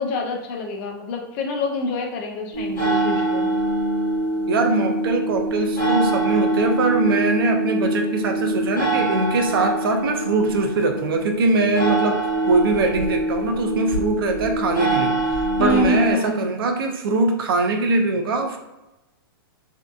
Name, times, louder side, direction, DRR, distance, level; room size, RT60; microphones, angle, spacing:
voice 1, 0.0-3.5 15.6-16.4, left 2 dB, 35° left, 2 dB, 0.4 m, -25 dB
sound 1, 2.5-16.1, right 1 dB, 15° left, 1.4 m, -24 dB
voice 2, 4.5-18.6, right 3 dB, 70° right, 5 dB, 0.5 m, -22 dB
2.7 x 2.3 x 2.3 m, 0.99 s
hypercardioid pair, 155°, 12 cm